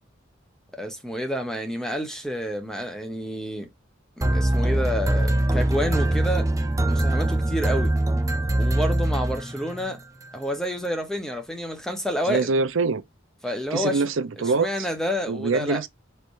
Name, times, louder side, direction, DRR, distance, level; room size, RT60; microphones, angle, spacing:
voice 1, 0.7-3.7 4.2-6.5 6.9-7.9 8.6-10.0 10.3-12.5 13.4-14.0 14.6-15.8, equal, 5° left, 1.0 m, -29 dB
sound 1, 4.2-9.9, right 1 dB, 15° right, 0.5 m, -23 dB
voice 2, 12.2-13.0 13.7-14.9 15.3-15.9, right 4 dB, 85° right, 0.6 m, -24 dB
5.9 x 3.3 x 2.6 m
head